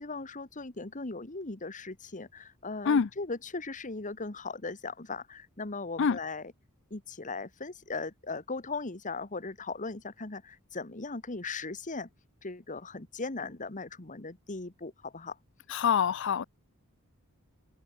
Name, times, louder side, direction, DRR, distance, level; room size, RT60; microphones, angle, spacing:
voice 1, 0.0-6.4 6.9-12.1 12.4-15.4, left 3 dB, 35° left, 1.6 m, -38 dB
voice 2, 15.7-16.4, left 6 dB, 60° left, 0.5 m, -25 dB
head